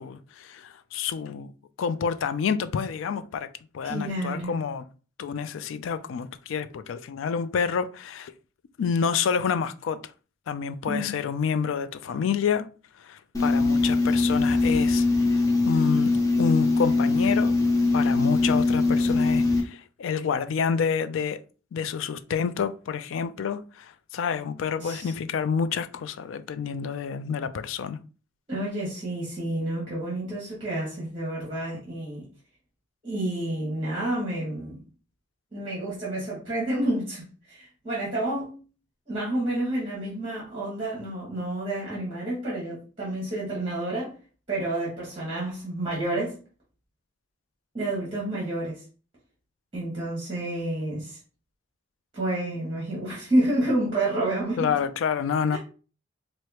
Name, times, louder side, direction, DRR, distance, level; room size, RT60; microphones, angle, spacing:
voice 1, 0.0-1.5 1.8-4.9 5.2-8.3 8.8-10.0 10.5-12.7 13.0-16.1 16.4-17.6 17.9-21.4 21.7-28.0 54.6-55.6, left 6 dB, 70° left, 0.3 m, -28 dB
voice 2, 3.8-4.5 10.9-11.1 24.8-25.1 28.5-32.3 33.0-34.8 35.5-38.5 39.1-44.1 44.5-46.4 47.7-48.8 49.7-51.2 52.1-54.7 55.5-55.6, right 1 dB, 25° right, 1.5 m, -29 dB
sound 1, 13.3-19.6, left 3 dB, 15° left, 0.5 m, -22 dB
4.7 x 2.1 x 2.9 m
head